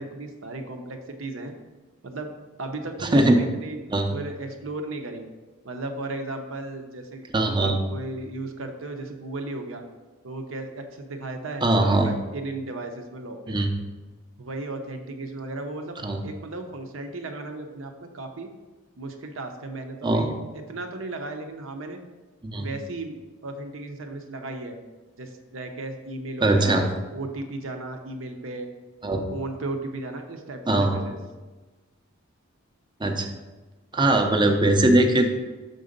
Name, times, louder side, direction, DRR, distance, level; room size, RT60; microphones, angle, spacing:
voice 1, 0.0-1.5 2.0-2.3 2.6-5.3 5.6-7.3 7.6-9.8 10.2-13.6 14.4-18.5 19.0-22.0 22.6-23.2 23.4-24.8 25.2-28.7 29.3-31.2, right 2 dB, 70° right, 5 dB, 0.8 m, -35 dB
voice 2, 3.0-3.4 3.9-4.1 7.3-7.8 11.6-12.1 13.5-13.7 16.0-16.2 20.0-20.3 22.4-22.7 26.4-26.9 29.0-29.3 30.7-31.0 33.0-33.3 33.9-35.3, right 1 dB, 20° right, 3 dB, 0.6 m, -20 dB
6.2 x 3.9 x 5.1 m, 1.2 s
head